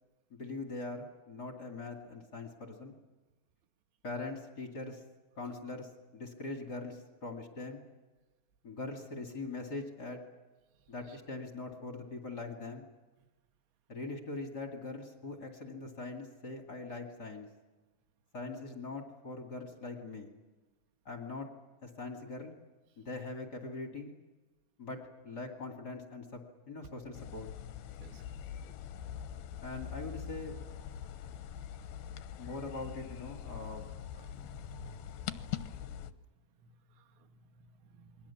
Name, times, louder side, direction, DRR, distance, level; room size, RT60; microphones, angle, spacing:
voice 1, 0.3-3.0 4.0-5.0 5.4-7.9 8.6-10.2 10.9-12.9 13.9-17.5 18.3-20.3 21.0-21.5 21.8-22.5 23.0-24.1 24.8-26.4 26.7-27.5 29.6-30.6 32.4-33.9, left 3 dB, 30° left, 2 dB, 2.0 m, -42 dB
sound 1, 27.1-36.1, left 9 dB, 75° left, 2.6 m, -43 dB
voice 2, 34.2-35.5 36.6-38.3, right 3 dB, 85° right, 7 dB, 3.7 m, -56 dB
29.0 x 22.5 x 7.2 m, 1.2 s
omnidirectional pair, 4.9 m